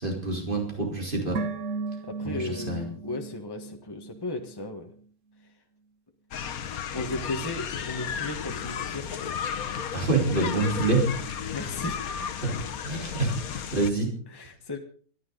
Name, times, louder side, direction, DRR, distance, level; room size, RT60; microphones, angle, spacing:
voice 1, 0.0-1.4 2.2-2.9 9.9-11.1 12.4-12.6 12.8-14.1, right 3 dB, 35° right, -1 dB, 4.2 m, -27 dB
sound 1, 1.4-4.7 4.9-5.0, right 4 dB, 60° right, 1.2 m, -36 dB
voice 2, 2.0-2.7 3.0-4.9 6.9-9.1 11.5-12.1 14.3-14.8, left 2 dB, 15° left, 4 dB, 1.4 m, -35 dB
sound 2, 6.3-13.9, left 7 dB, 75° left, 1.4 m, -33 dB
24.5 x 11.5 x 3.9 m, 0.44 s
omnidirectional pair, 1.5 m